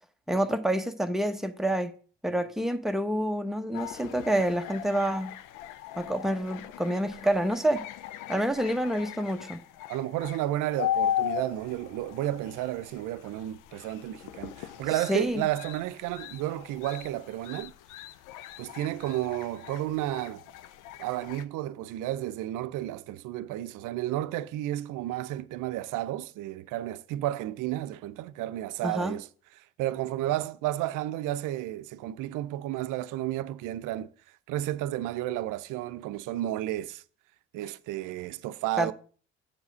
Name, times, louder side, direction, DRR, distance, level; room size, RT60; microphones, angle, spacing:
voice 1, 0.3-1.9 2.2-5.3 6.0-7.8 8.3-9.6 15.1-15.4 28.8-29.1 38.8-38.9, right 1 dB, ahead, 0.9 m, -28 dB
sound 1, 3.7-21.5, left 11 dB, 65° left, 0.6 m, -38 dB
voice 2, 9.9-17.7 18.6-20.4 21.0-29.3 29.5-34.1 34.5-37.0 37.5-38.9, right 14 dB, 65° right, 0.6 m, -32 dB
7.6 x 4.8 x 6.2 m
hypercardioid pair, 60°, 34 cm